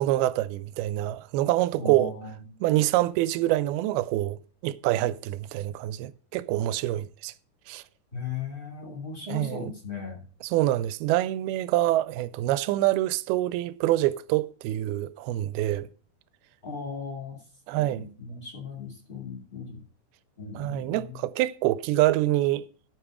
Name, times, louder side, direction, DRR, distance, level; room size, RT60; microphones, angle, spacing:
voice 1, 0.0-2.1 2.6-7.3 7.7-7.8 9.3-9.7 10.4-15.9 17.7-18.1 20.6-22.7, right 15 dB, 85° right, 2.5 m, -26 dB
voice 2, 1.7-2.4 8.1-10.2 16.6-17.4 17.7-19.8 20.4-21.2, left 5 dB, 20° left, 1.5 m, -37 dB
13.0 x 5.4 x 4.8 m
omnidirectional pair, 4.4 m